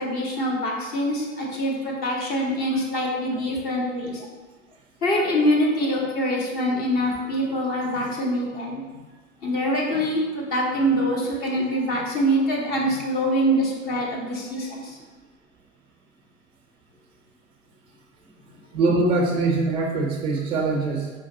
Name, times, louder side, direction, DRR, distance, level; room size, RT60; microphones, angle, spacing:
voice 1, 0.0-4.3 5.0-8.8 9.4-15.0, equal, 25° left, -2 dB, 0.8 m, -24 dB
voice 2, 18.7-21.1, right 3 dB, 15° right, 1 dB, 0.4 m, -22 dB
4.5 x 2.4 x 3.8 m, 1.3 s
hypercardioid pair, 110°, 40 cm